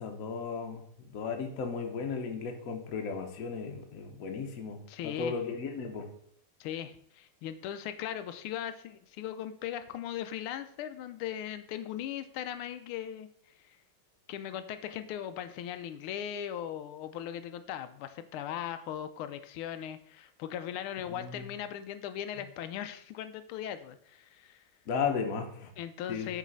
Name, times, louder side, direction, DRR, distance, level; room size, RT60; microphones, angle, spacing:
voice 1, 0.0-6.1 21.1-21.5 24.9-25.7 26.1-26.3, left 5 dB, 50° left, 4 dB, 1.1 m, -35 dB
voice 2, 4.9-5.4 6.6-13.3 14.3-24.6 25.8-26.4, left 10 dB, 85° left, 10 dB, 1.5 m, -39 dB
6.1 x 4.1 x 5.4 m, 0.66 s
omnidirectional pair, 2.3 m